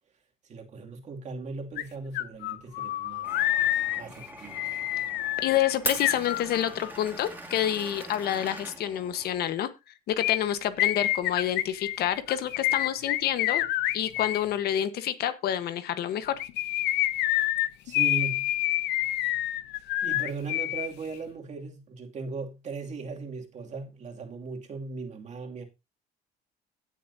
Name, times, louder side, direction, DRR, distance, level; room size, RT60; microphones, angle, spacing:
voice 1, 0.5-3.3 4.0-4.9 17.8-18.5 20.0-25.6, right 4 dB, 45° right, 2.6 m, -38 dB
sound 1, 1.8-1.9 2.1-6.9 10.2-14.4 16.3-20.9 21.1-21.2, left 15 dB, 85° left, 0.8 m, -27 dB
Glass, 3.2-9.5, right 2 dB, 10° right, 2.6 m, -40 dB
voice 2, 5.4-13.7 13.9-16.3, left 11 dB, 70° left, 1.3 m, -28 dB
16.5 x 7.1 x 2.8 m
cardioid pair, 110°, 17 cm